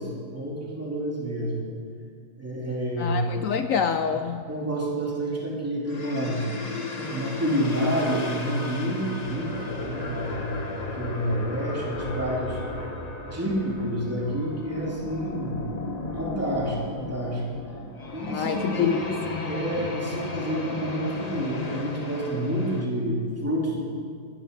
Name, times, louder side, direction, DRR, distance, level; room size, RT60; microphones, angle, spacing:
voice 1, 0.0-1.7 2.4-3.2 4.5-6.4 6.9-12.6 13.3-15.8 16.2-17.4 18.1-19.1 19.4-23.8, equal, 5° right, 3.0 m, -29 dB
voice 2, 3.0-4.4 18.3-19.0, left 7 dB, 80° left, 0.7 m, -26 dB
sound 1, 5.9-22.8, left 2 dB, 25° left, 0.9 m, -35 dB
23.0 x 11.5 x 5.4 m
omnidirectional pair, 2.0 m